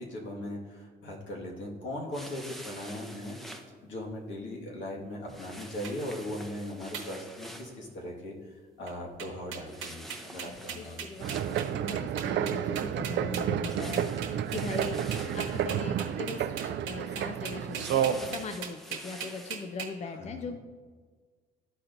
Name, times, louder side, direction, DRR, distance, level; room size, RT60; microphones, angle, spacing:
voice 1, 0.0-11.1 15.2-15.5 20.0-20.5, left 1 dB, 75° left, -2 dB, 1.7 m, -39 dB
sound 1, 2.1-3.7 5.3-7.8 9.7-12.0 13.7-15.7 17.6-19.7, right 1 dB, ahead, 0.7 m, -47 dB
sound 2, 5.8-5.9 6.9-7.1 7.6-7.9 8.9-9.0 9.2-19.9, right 7 dB, 90° right, 1.1 m, -39 dB
voice 2, 10.3-15.0 15.3-20.6, left 4 dB, 35° left, 7 dB, 0.5 m, -40 dB
sound 3, 11.2-18.4, right 9 dB, 65° right, 0.4 m, -31 dB
12.5 x 4.4 x 2.6 m, 1.5 s
cardioid pair, 90°, 20 cm